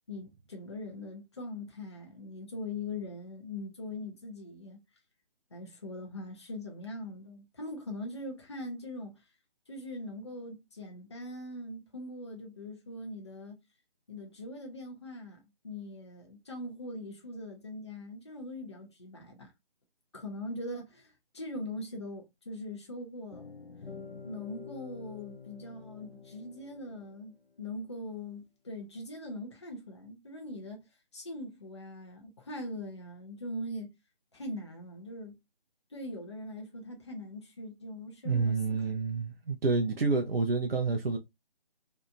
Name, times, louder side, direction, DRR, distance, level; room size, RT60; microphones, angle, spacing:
voice 1, 0.1-4.8 5.5-9.1 9.7-13.6 14.1-19.5 20.1-23.5 24.2-30.8 31.1-33.9 34.3-35.3 35.9-38.8, left 1 dB, 30° left, 0.5 m, -41 dB
sound 1, 23.3-27.5, left 5 dB, 80° left, 0.8 m, -48 dB
voice 2, 38.2-41.2, right 4 dB, 75° right, 0.6 m, -28 dB
2.8 x 2.4 x 2.3 m
figure-of-eight pair, 150°, 29 cm